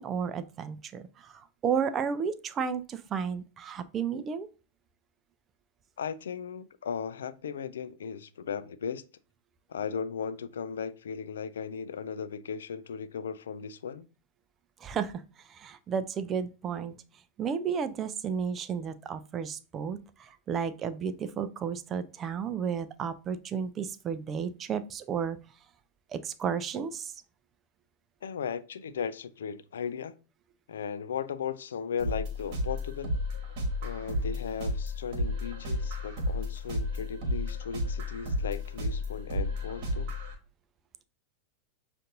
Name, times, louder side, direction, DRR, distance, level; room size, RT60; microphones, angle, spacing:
voice 1, 0.0-4.5 14.8-15.2 15.5-16.9 17.4-25.4 26.1-27.1, right 7 dB, 25° right, 0.4 m, -33 dB
voice 2, 6.0-9.0 9.7-14.1 28.2-30.1 30.7-33.2 33.8-40.1, left 7 dB, 65° left, 0.3 m, -36 dB
sound 1, 32.0-40.3, left 1 dB, 45° right, 1.2 m, -32 dB
6.4 x 2.5 x 2.6 m
figure-of-eight pair, 90°, 0 cm